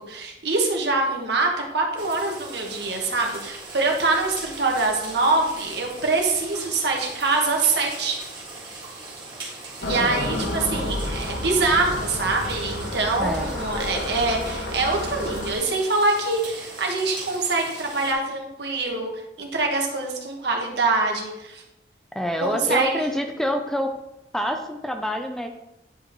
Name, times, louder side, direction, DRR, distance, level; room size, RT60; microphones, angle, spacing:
voice 1, 0.0-8.2 9.8-21.6 22.4-23.0, right 3 dB, 75° right, 1 dB, 1.4 m, -24 dB
sound 1, 2.0-18.1, right 3 dB, 25° right, 1.8 m, -40 dB
sound 2, 9.8-15.5, left 1 dB, 85° left, 1.2 m, -30 dB
voice 2, 22.2-23.9 24.3-25.5, equal, 5° left, 5 dB, 0.4 m, -26 dB
10.0 x 5.0 x 3.0 m, 0.92 s
head